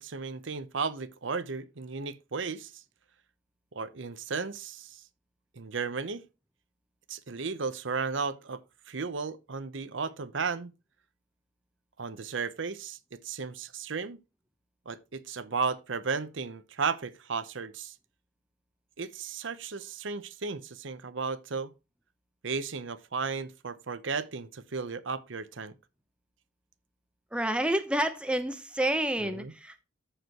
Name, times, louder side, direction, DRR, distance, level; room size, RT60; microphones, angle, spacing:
voice 1, 0.0-2.7 3.7-5.0 5.6-6.2 7.1-8.6 8.9-10.7 12.0-14.2 14.9-17.9 19.0-21.7 22.4-25.7 29.2-29.5, right 5 dB, 70° right, 0.8 m, -34 dB
voice 2, 27.3-29.8, right 1 dB, 5° right, 0.8 m, -29 dB
14.0 x 5.0 x 3.0 m
head